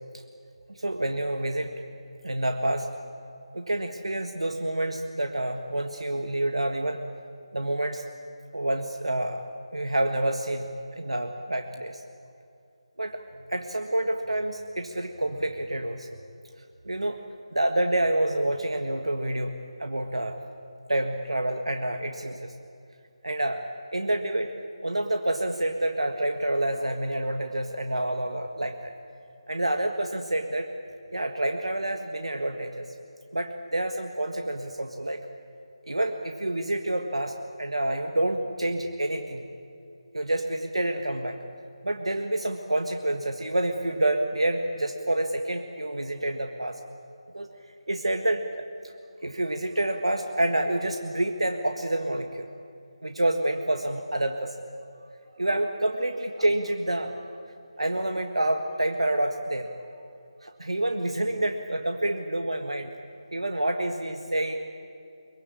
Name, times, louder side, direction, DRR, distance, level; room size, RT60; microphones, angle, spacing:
voice 1, 0.8-1.7 2.2-2.9 3.5-7.0 7.5-8.0 8.5-9.4 9.7-12.0 13.0-13.2 13.5-16.1 16.8-17.2 17.5-20.4 20.9-22.5 23.2-23.6 23.9-24.5 24.8-28.9 29.5-30.7 31.1-32.9 33.3-35.3 35.9-39.5 40.1-41.4 41.8-46.8 47.3-47.5 47.9-48.6 49.2-52.5 53.0-54.5 55.4-57.3 57.8-59.7 60.4-62.9 63.3-64.7, right 1 dB, 70° right, 5 dB, 1.7 m, -28 dB
23.0 x 23.0 x 8.7 m, 2.6 s
figure-of-eight pair, 155°, 3 cm